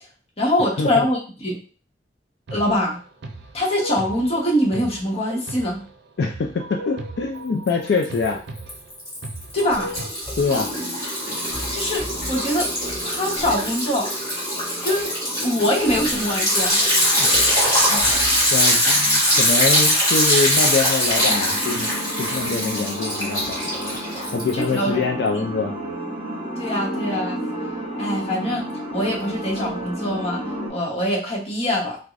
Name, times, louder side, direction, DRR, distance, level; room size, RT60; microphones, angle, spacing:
voice 1, 0.4-1.6 2.5-3.0 3.5-5.8 9.5-9.9 11.7-12.7 13.0-14.1 14.8-15.1 15.4-16.8 24.5-25.0 25.3-25.5 26.6-27.4 28.0-28.6 28.9-32.0, left 1 dB, 35° left, -3 dB, 1.0 m, -23 dB
sound 1, 2.5-10.1, right 1 dB, 80° right, 0.5 m, -37 dB
voice 2, 6.2-8.4 10.4-10.7 17.2-17.4 17.9-18.0 18.5-21.9 22.2-23.6 24.3-25.7, left 4 dB, 65° left, 2 dB, 0.4 m, -24 dB
Liquid, 7.7-8.3 8.6-24.8, equal, 20° left, 1.7 m, -22 dB
sound 2, 21.1-30.7, equal, 30° right, 1.0 m, -31 dB
4.6 x 2.1 x 2.5 m, 0.39 s
head